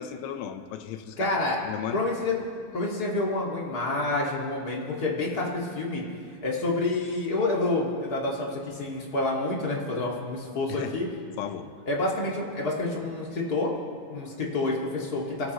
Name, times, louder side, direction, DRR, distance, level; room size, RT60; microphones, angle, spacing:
voice 1, 0.0-1.3 1.7-2.0 10.7-11.0 11.4-11.7, left 9 dB, 90° left, 8 dB, 2.9 m, -35 dB
voice 2, 1.2-1.6 1.9-2.4 2.7-6.0 6.4-11.1 11.8-13.7 14.1-15.5, left 2 dB, 35° left, -3 dB, 1.6 m, -28 dB
29.0 x 13.5 x 3.1 m, 2.2 s
omnidirectional pair, 4.7 m